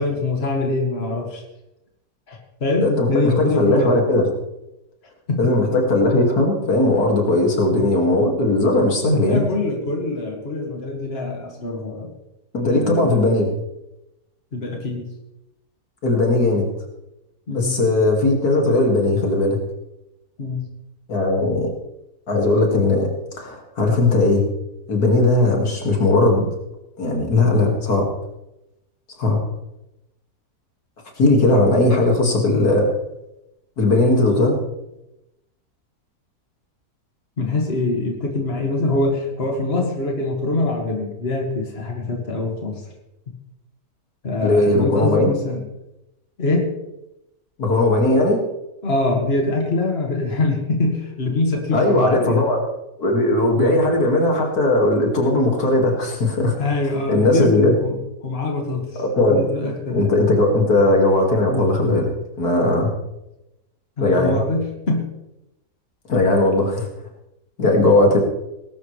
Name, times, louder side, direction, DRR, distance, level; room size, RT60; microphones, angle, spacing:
voice 1, 0.0-1.4 2.3-3.9 5.3-5.5 7.7-7.9 9.3-12.1 12.6-13.1 14.5-15.1 17.5-17.8 20.4-20.6 37.4-42.8 44.2-45.7 46.4-46.7 48.8-52.4 53.6-53.7 56.6-58.0 58.2-59.0 59.3-60.1 64.0-65.1 67.6-67.7, left 2 dB, 40° left, 1 dB, 2.3 m, -24 dB
voice 2, 2.8-4.3 5.4-9.4 12.5-13.5 16.0-16.6 17.5-19.6 21.1-21.7 22.3-23.1 23.3-24.4 24.9-26.5 27.0-28.1 29.2-29.4 31.2-32.9 33.8-34.6 44.4-45.3 47.6-48.4 51.7-52.6 53.0-56.6 57.1-57.7 59.0-59.4 59.9-62.1 62.4-62.9 64.0-64.4 66.1-66.9 67.6-68.2, left 2 dB, 85° left, 1 dB, 2.9 m, -18 dB
19.5 x 12.0 x 3.3 m, 0.92 s
omnidirectional pair, 1.6 m